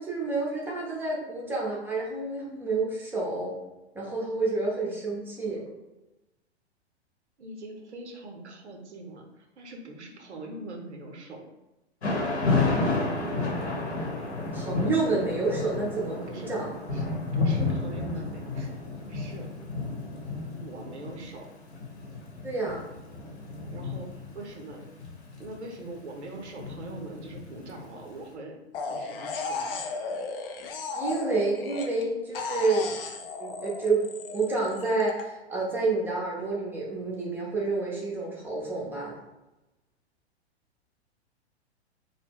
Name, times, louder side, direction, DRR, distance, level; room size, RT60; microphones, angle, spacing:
voice 1, 0.0-3.6 3.9-5.6 14.5-16.7 22.4-22.8 30.9-33.0 33.4-39.1, right 3 dB, 5° right, -5 dB, 0.5 m, -29 dB
voice 2, 7.4-11.5 16.3-16.5 16.9-18.8 19.1-19.5 20.5-21.5 23.7-24.8 25.4-28.6 28.9-29.9, right 2 dB, 80° right, 2 dB, 0.6 m, -42 dB
Thunder / Rain, 12.0-28.0, left 3 dB, 80° left, 0.9 m, -31 dB
sound 1, 28.7-32.0 32.3-35.2, left 4 dB, 55° left, 0.5 m, -35 dB
2.2 x 2.0 x 3.4 m, 1.0 s
figure-of-eight pair, 110°, 33 cm